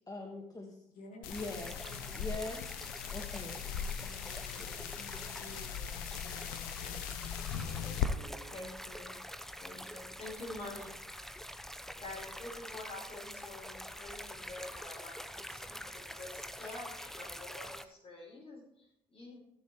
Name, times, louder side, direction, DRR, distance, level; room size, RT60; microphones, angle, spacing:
voice 1, 0.0-0.8 1.3-1.7 2.1-2.6 3.1-3.6 4.6-4.7 5.0-5.2, left 2 dB, 25° left, 1 dB, 1.8 m, -42 dB
voice 2, 0.9-2.4 3.4-7.0 7.5-8.6 11.9-12.4, left 1 dB, 60° left, 2 dB, 2.8 m, -55 dB
sound 1, 1.2-8.1, left 9 dB, 80° left, 0.8 m, -39 dB
sound 2, 1.3-17.8, equal, ahead, 0.9 m, -46 dB
voice 3, 8.5-9.2 9.6-11.0 12.0-19.4, left 2 dB, 40° left, -2 dB, 4.7 m, -47 dB
18.0 x 7.1 x 3.2 m, 0.78 s
hypercardioid pair, 50°, 15 cm